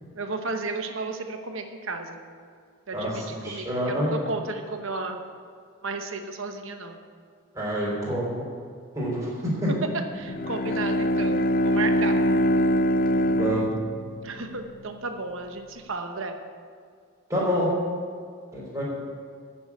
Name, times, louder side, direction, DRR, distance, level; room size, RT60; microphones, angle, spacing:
voice 1, 0.2-2.2 2.9-5.2 5.8-7.0 10.1-11.4 11.6-12.2 14.2-16.4, right 3 dB, 60° right, 6 dB, 1.0 m, -33 dB
voice 2, 2.9-4.2 7.5-8.4 9.0-9.3 9.6-9.7 13.2-13.7 17.3-17.7 18.5-18.8, equal, 15° right, -6 dB, 3.6 m, -27 dB
Bowed string instrument, 10.2-14.6, equal, 40° left, 0.4 m, -23 dB
9.1 x 7.2 x 8.3 m, 2.1 s
head